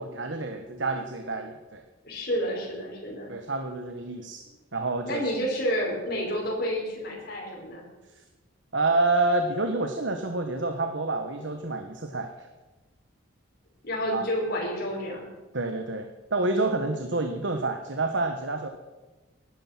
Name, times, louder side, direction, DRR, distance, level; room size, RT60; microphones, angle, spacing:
voice 1, 0.0-1.8 3.3-4.4 4.7-5.3 8.7-12.5 14.1-14.3 15.5-18.7, right 2 dB, 65° right, 6 dB, 1.3 m, -28 dB
voice 2, 2.0-3.3 5.1-7.8 13.8-15.3 16.8-17.0, equal, 50° left, -3 dB, 5.4 m, -30 dB
18.0 x 12.0 x 6.0 m, 1.2 s
head